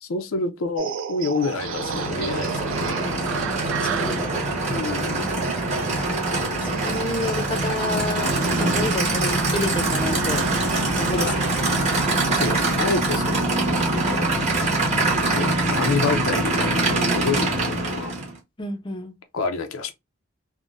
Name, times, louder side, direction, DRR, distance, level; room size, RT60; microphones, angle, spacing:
voice 1, 0.0-3.0 4.7-5.3 11.1-11.4 12.3-14.3 15.3-18.2 19.3-19.9, left 4 dB, 90° left, 0.5 m, -28 dB
sound 1, 0.8-13.0, right 7 dB, 65° right, 0.4 m, -35 dB
Aircraft / Idling, 1.4-18.4, right 2 dB, 35° right, 1.1 m, -24 dB
voice 2, 3.7-4.3 6.7-8.3 8.6-10.4 11.0-11.3 18.6-19.1, left 2 dB, 25° left, 0.5 m, -29 dB
3.6 x 2.0 x 2.5 m
head